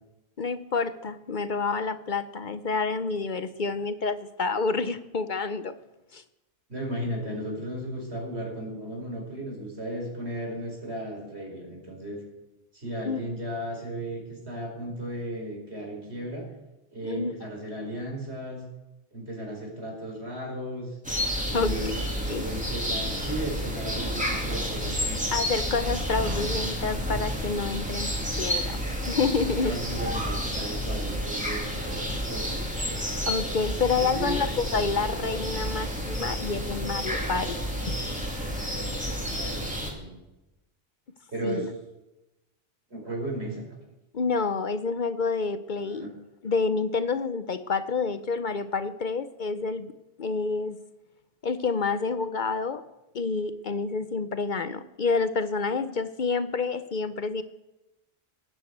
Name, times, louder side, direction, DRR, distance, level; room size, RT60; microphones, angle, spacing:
voice 1, 0.4-5.7 6.1-6.2 13.1-13.2 17.0-17.3 21.5-21.8 22.3-22.5 25.3-28.8 29.1-29.8 33.3-37.9 41.4-41.7 44.1-46.1 46.4-49.9 50.2-50.8 51.4-52.8 53.1-57.4, left 4 dB, 50° left, 13 dB, 0.8 m, -28 dB
voice 2, 6.7-12.2 12.7-16.5 16.9-18.6 19.1-21.0 21.5-21.9 22.1-25.2 29.6-32.6 34.0-34.4 38.9-40.2 41.3-41.7 42.9-43.6 45.8-46.1, right 1 dB, 80° right, 1 dB, 4.9 m, -35 dB
sound 1, 21.0-39.9, equal, 5° right, 2.8 m, -30 dB
17.5 x 10.0 x 8.0 m, 1.0 s
omnidirectional pair, 1.1 m